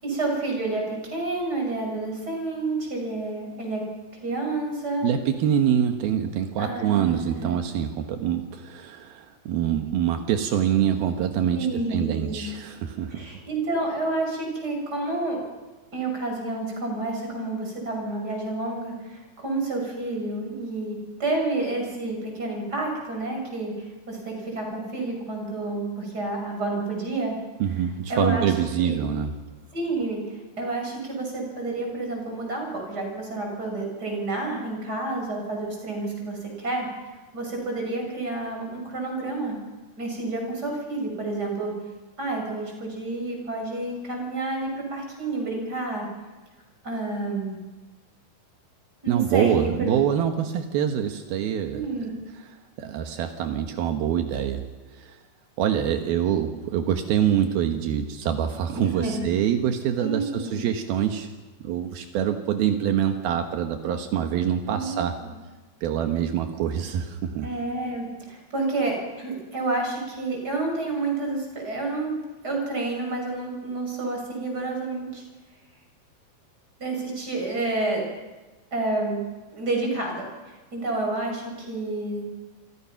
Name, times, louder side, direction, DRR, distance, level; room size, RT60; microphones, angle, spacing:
voice 1, 0.0-3.8 4.2-5.1 6.6-7.6 11.5-12.6 13.1-15.4 15.9-27.4 28.1-29.0 29.7-36.9 37.3-39.6 40.0-41.7 42.2-46.1 46.8-47.6 49.0-50.0 51.7-52.1 58.7-59.3 60.0-60.6 64.6-65.3 67.4-72.2 72.4-75.2 76.8-78.0 78.7-79.2 79.5-82.3, right 2 dB, 25° right, 1 dB, 6.8 m, -29 dB
voice 2, 5.0-13.3 27.6-29.3 49.1-51.9 52.8-54.6 54.9-55.2 55.6-61.3 61.6-65.2 65.8-67.5, right 9 dB, 80° right, 5 dB, 3.2 m, -25 dB
28.0 x 25.5 x 5.9 m, 1.2 s
omnidirectional pair, 4.3 m